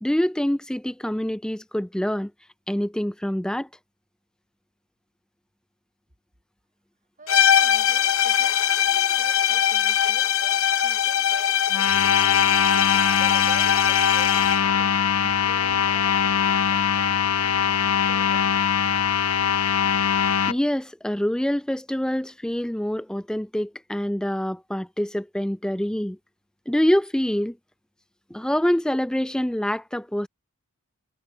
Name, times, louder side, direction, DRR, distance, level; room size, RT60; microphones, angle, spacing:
voice 1, 0.0-2.3 2.7-3.7 20.5-26.2 26.7-27.6 28.3-30.3, equal, 5° left, 0.4 m, -25 dB
voice 2, 7.2-18.6, right 3 dB, 35° right, 5.8 m, -46 dB
sound 1, 7.3-14.7, left 9 dB, 60° left, 1.0 m, -21 dB
sound 2, 11.7-20.5, left 8 dB, 85° left, 1.1 m, -22 dB
head